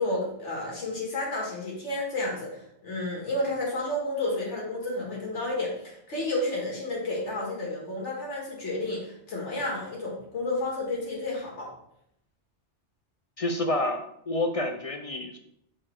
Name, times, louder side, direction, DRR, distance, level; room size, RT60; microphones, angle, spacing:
voice 1, 0.0-11.7, left 2 dB, 75° left, -3 dB, 2.1 m, -31 dB
voice 2, 13.4-15.4, left 2 dB, 50° left, 5 dB, 0.4 m, -29 dB
6.4 x 4.2 x 4.5 m, 0.74 s
omnidirectional pair, 1.2 m